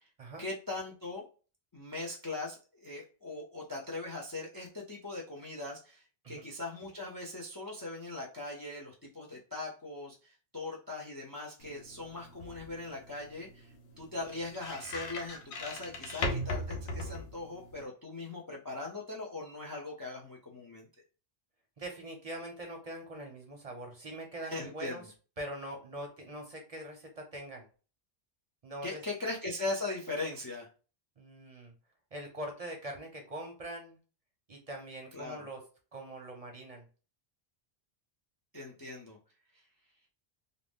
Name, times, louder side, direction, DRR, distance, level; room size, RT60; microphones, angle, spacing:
voice 1, 0.4-1.3 1.7-20.9 24.4-25.1 28.8-30.7 35.1-35.4 38.5-39.2, left 2 dB, 35° left, -1 dB, 0.3 m, -40 dB
sound 1, 11.6-17.8, left 1 dB, 90° left, 0.9 m, -39 dB
voice 2, 21.8-25.0 25.4-27.6 28.6-29.0 31.2-31.7 32.1-34.0 34.5-35.6 35.9-36.9, right 1 dB, 45° right, 2 dB, 0.6 m, -43 dB
2.5 x 2.1 x 3.4 m, 0.36 s
omnidirectional pair, 1.1 m